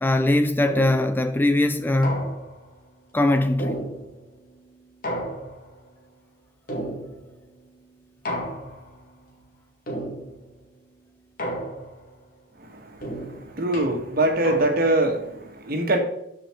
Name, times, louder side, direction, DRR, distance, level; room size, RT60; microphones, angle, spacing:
voice 1, 0.0-2.3 3.1-3.8, left 1 dB, 10° left, 0.4 m, -21 dB
sound 1, 0.7-1.2 2.0-2.7 3.6-4.4 5.0-5.8 6.7-7.4 8.3-9.0 9.9-10.5 11.4-12.1 13.0-15.1, equal, 50° left, 2.3 m, -33 dB
voice 2, 12.7-16.0, right 2 dB, 55° right, 1.6 m, -24 dB
13.5 x 5.1 x 4.5 m
head